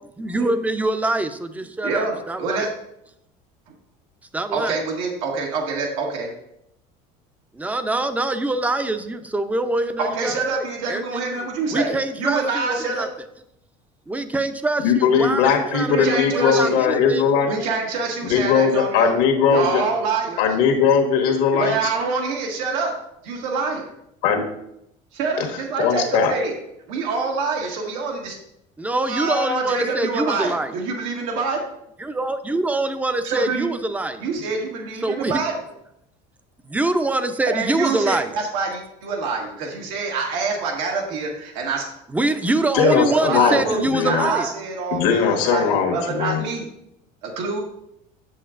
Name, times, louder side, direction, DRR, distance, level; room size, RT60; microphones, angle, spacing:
voice 1, 0.2-2.7 4.3-4.8 7.5-11.5 11.7-13.1 14.1-17.6 28.8-30.8 32.0-34.3 35.0-35.4 36.6-38.4 42.1-44.5, right 2 dB, 10° right, 10 dB, 0.5 m, -24 dB
voice 2, 1.8-2.7 4.5-6.3 10.0-13.1 15.9-16.8 17.5-19.2 19.5-20.4 21.5-22.9 23.2-23.9 25.1-26.6 26.9-28.4 29.1-31.6 33.2-33.7 34.2-35.5 37.5-41.9 42.8-46.7 47.2-47.6, right 4 dB, 90° right, 0 dB, 1.6 m, -26 dB
voice 3, 14.8-17.5 18.2-19.8 20.4-21.8 24.2-24.4 25.4-25.5 25.8-26.3 42.7-44.3 44.9-46.4, left 6 dB, 85° left, 2 dB, 1.4 m, -19 dB
7.8 x 7.4 x 2.5 m, 0.79 s
cardioid pair, 130°, 17 cm